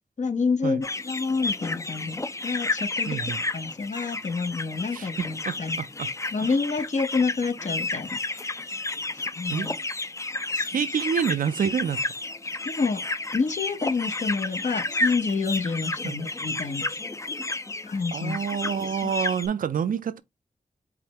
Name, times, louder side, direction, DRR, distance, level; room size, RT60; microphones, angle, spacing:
voice 1, 0.2-3.2 3.5-5.8 6.3-8.6 9.1-9.7 10.5-10.7 12.6-13.1 13.3-16.9 17.8-18.4 19.0-19.1, left 4 dB, 60° left, 0.7 m, -28 dB
sound 1, 0.8-19.5, left 2 dB, 20° left, 0.4 m, -31 dB
voice 2, 3.1-3.4 4.9-6.1 6.4-6.5 9.5-9.7 10.7-12.0 16.0-16.2 18.1-20.2, right 7 dB, 85° right, 0.4 m, -28 dB
4.9 x 3.2 x 2.9 m
cardioid pair, 50°, 14 cm